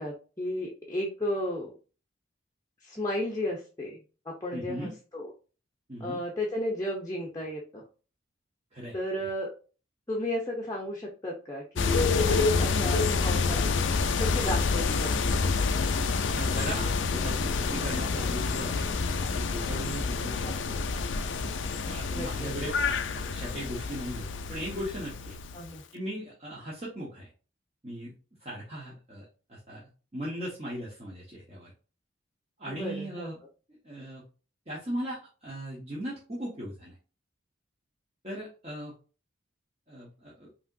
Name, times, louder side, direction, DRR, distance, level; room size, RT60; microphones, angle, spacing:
voice 1, 0.0-1.7 2.8-4.0 4.2-5.3 6.0-7.8 8.9-9.5 10.1-13.7 14.2-15.2 20.4-20.5 21.6-21.7 22.1-22.5 25.5-25.8 32.7-33.3, left 1 dB, 20° left, -2 dB, 0.8 m, -33 dB
voice 2, 4.5-4.9 5.9-6.2 8.7-9.0 16.3-20.8 21.4-21.5 21.8-25.3 25.9-27.3 27.8-28.1 28.4-29.8 30.1-31.7 32.6-33.4 33.8-34.2 34.7-36.9 38.2-38.9 39.9-40.5, equal, 35° right, -6 dB, 1.2 m, -38 dB
sound 1, 11.8-25.8, left 4 dB, 80° left, 0.5 m, -28 dB
5.2 x 3.0 x 2.6 m, 0.35 s
head